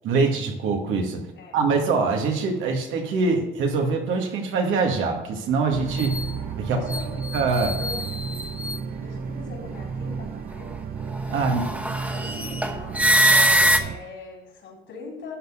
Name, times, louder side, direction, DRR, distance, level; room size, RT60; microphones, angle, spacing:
voice 1, 0.0-1.2 1.5-6.1 6.6-6.8 7.3-7.8 11.3-11.6, right 4 dB, 90° right, 2 dB, 1.9 m, -23 dB
sound 1, 5.7-14.0, right 5 dB, 50° right, 0.7 m, -32 dB
sound 2, 5.9-6.3 6.9-8.8 11.1-13.8, right 1 dB, 5° right, 1.2 m, -23 dB
voice 2, 6.7-7.2 7.8-7.9 9.0-10.7 11.3-11.8 12.1-15.4, left 3 dB, 70° left, -1 dB, 3.9 m, -41 dB
12.5 x 4.1 x 7.8 m, 1.0 s
cardioid pair, 90°, 20 cm